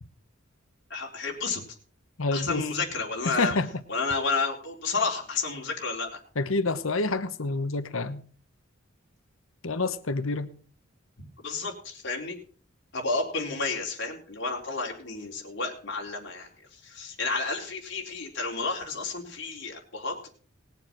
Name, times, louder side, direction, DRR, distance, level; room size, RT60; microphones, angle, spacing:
voice 1, 0.9-1.6 2.3-3.6 3.9-6.2 11.4-12.4 12.9-16.5 16.8-20.3, left 4 dB, 55° left, 0 dB, 3.7 m, -31 dB
voice 2, 2.2-2.7 3.2-3.7 6.4-8.2 9.6-10.5, left 3 dB, 80° left, 11 dB, 1.1 m, -28 dB
19.5 x 7.4 x 6.0 m, 0.44 s
head